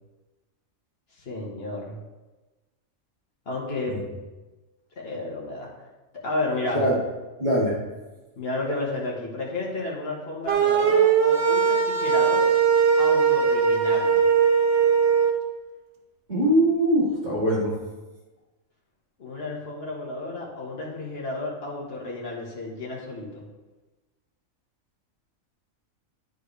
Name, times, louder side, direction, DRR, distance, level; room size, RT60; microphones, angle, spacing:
voice 1, 1.2-2.0 3.4-3.9 4.9-5.7 6.2-6.9 8.4-12.5 13.0-14.2 19.2-23.4, left 2 dB, 50° left, -3 dB, 1.7 m, -32 dB
voice 2, 7.4-7.7 16.3-17.7, right 1 dB, 35° right, -7 dB, 2.0 m, -22 dB
sound 1, 10.5-15.3, right 6 dB, 55° right, 0.9 m, -20 dB
10.0 x 4.6 x 3.2 m, 1.2 s
omnidirectional pair, 1.4 m